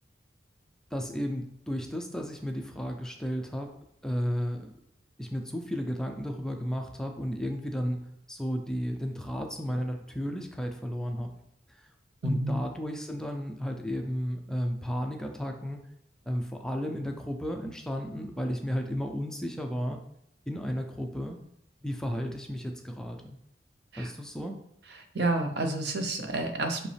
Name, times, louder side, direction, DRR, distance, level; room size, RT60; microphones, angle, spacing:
voice 1, 0.9-3.7 4.0-4.7 5.2-8.0 8.3-11.3 11.7-11.9 12.2-15.8 16.3-20.0 20.5-21.4 21.8-23.4 24.0-24.6, equal, 5° left, 3 dB, 0.5 m, -33 dB
voice 2, 12.2-12.6 23.9-24.1 25.1-26.9, right 2 dB, 70° right, 6 dB, 0.8 m, -29 dB
5.6 x 5.0 x 3.4 m, 0.74 s
head